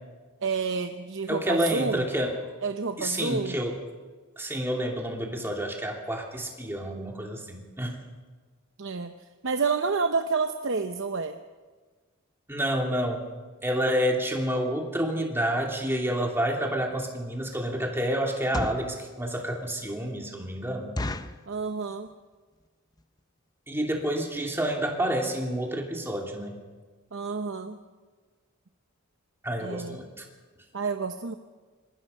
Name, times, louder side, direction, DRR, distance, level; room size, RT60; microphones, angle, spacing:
voice 1, 0.4-2.0 2.6-3.6 8.8-9.1 9.4-11.4 21.5-22.1 27.1-27.8 29.6-30.0 30.7-31.3, right 4 dB, 65° right, 7 dB, 0.8 m, -29 dB
voice 2, 1.3-2.4 3.0-3.8 4.4-8.0 12.5-13.3 13.6-20.9 23.7-26.6 29.4-30.2, equal, 10° right, 1 dB, 2.9 m, -29 dB
sound 1, 16.7-16.9 17.4-17.6 18.3-18.9 19.5-19.6 19.9-20.0 20.4-20.5 21.0-21.5 22.1-22.3 22.6-22.7 22.9-23.2 23.7-23.8 24.1-24.2 24.6-24.7 24.9-25.0, left 2 dB, 20° left, 0.6 m, -33 dB
25.5 x 20.0 x 5.5 m, 1.4 s
head